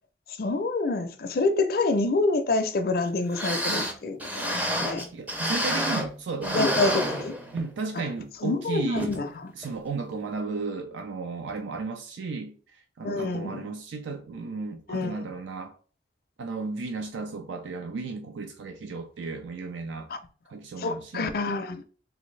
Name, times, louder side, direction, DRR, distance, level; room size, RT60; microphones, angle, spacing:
voice 1, 0.4-5.0 6.5-7.3 8.4-9.5 13.0-13.7 14.9-15.1 20.1-20.2 20.8-21.8, left 3 dB, 55° left, 0.4 m, -27 dB
sound 1, 3.0-3.1 3.3-6.2 6.4-7.8 8.2-8.3 8.9-9.2 9.6-9.7, equal, 10° right, 0.4 m, -29 dB
voice 2, 5.1-6.9 7.5-9.1 9.6-15.8 16.4-20.1 20.5-21.3, right 4 dB, 85° right, 0.4 m, -34 dB
3.4 x 2.5 x 3.1 m
head